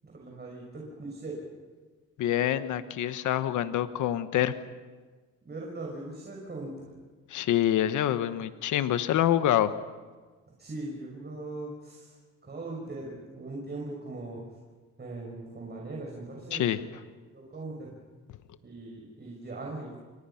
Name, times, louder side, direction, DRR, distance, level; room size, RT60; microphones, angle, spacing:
voice 1, 0.0-1.4 5.4-6.9 10.6-12.1 12.4-14.4 15.0-16.9 17.3-17.9 18.6-20.0, right 2 dB, 35° right, -1 dB, 6.2 m, -40 dB
voice 2, 2.2-4.5 7.3-9.7 16.5-16.8, left 12 dB, 80° left, 11 dB, 1.2 m, -26 dB
29.0 x 24.0 x 5.8 m, 1.4 s
cardioid pair, 90°, 30 cm